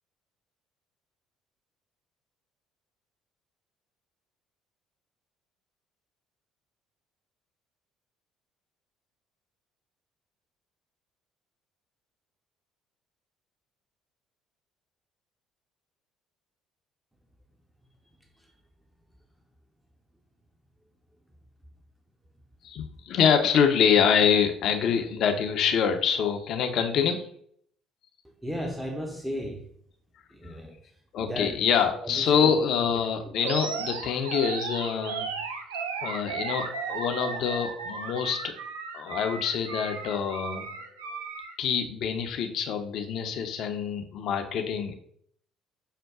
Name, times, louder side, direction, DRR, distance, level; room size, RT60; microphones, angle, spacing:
voice 1, 22.6-27.3 31.1-35.3 36.0-38.4 38.9-40.7 41.6-44.9, left 7 dB, 60° left, 6 dB, 0.6 m, -25 dB
voice 2, 28.4-29.7 30.3-30.8 31.2-31.6 32.0-32.5 33.2-33.4, equal, 10° right, 2 dB, 0.8 m, -34 dB
Animal, 33.4-41.5, right 5 dB, 80° right, 0.5 m, -35 dB
6.3 x 2.2 x 3.6 m, 0.64 s
hypercardioid pair, 55°, 0 cm